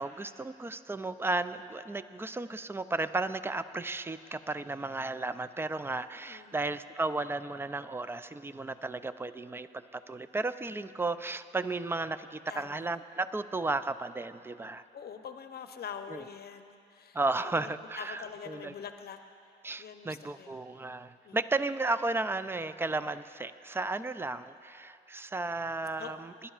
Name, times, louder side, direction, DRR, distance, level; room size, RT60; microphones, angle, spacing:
voice 1, 0.0-14.8 16.1-16.2 17.1-18.7 19.6-26.3, right 2 dB, 10° right, 13 dB, 0.3 m, -34 dB
voice 2, 6.3-6.6 10.7-10.8 12.5-12.8 14.9-19.2 19.8-20.7 21.2-21.4 26.0-26.2, left 7 dB, 55° left, 7 dB, 0.7 m, -45 dB
21.0 x 11.0 x 2.4 m, 2.6 s
cardioid pair, 90°, 20 cm